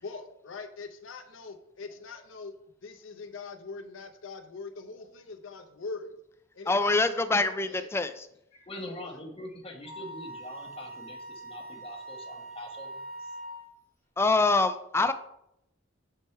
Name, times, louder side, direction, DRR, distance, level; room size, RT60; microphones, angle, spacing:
voice 1, 0.0-6.1 6.5-7.9 8.9-9.2, left 4 dB, 85° left, 7 dB, 0.7 m, -42 dB
voice 2, 6.7-8.3 14.2-15.1, left 3 dB, 15° left, 10 dB, 0.3 m, -25 dB
voice 3, 8.5-13.3, left 1 dB, 30° left, 0 dB, 1.1 m, -43 dB
Wind instrument woodwind instrument, 9.8-13.7, right 1 dB, 50° right, 1.6 m, -43 dB
6.7 x 3.6 x 4.2 m, 0.78 s
head